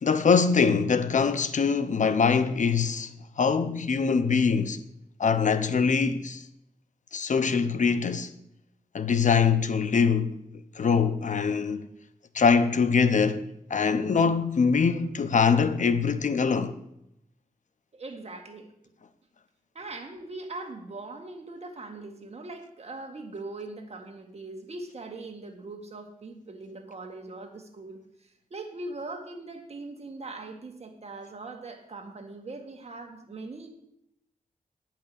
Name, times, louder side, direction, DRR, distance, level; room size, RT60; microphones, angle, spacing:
voice 1, 0.0-4.8 5.2-6.5 7.1-8.3 8.9-10.4 10.8-11.9 12.3-16.8, left 5 dB, 55° left, 0.7 m, -23 dB
voice 2, 17.9-18.7 19.7-28.0 28.5-33.7, right 2 dB, 45° right, 1.7 m, -41 dB
9.6 x 5.8 x 8.4 m
wide cardioid pair, 125°, 15 cm